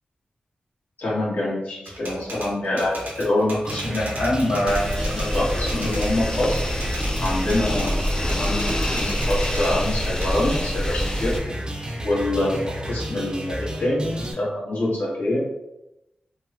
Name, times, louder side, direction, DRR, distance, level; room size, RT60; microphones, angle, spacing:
voice 1, 1.0-6.6 7.2-11.5 12.0-15.4, left 1 dB, 70° left, -5 dB, 1.3 m, -25 dB
Typewriter, 1.8-6.1 6.5-9.7 10.2-11.9, right 1 dB, 75° right, 1.0 m, -36 dB
sound 1, 3.7-14.3, equal, 25° right, 0.6 m, -32 dB
sound 2, 4.7-11.4, left 1 dB, 25° left, 0.4 m, -26 dB
3.4 x 2.1 x 2.8 m, 0.89 s
cardioid pair, 50°, 3 cm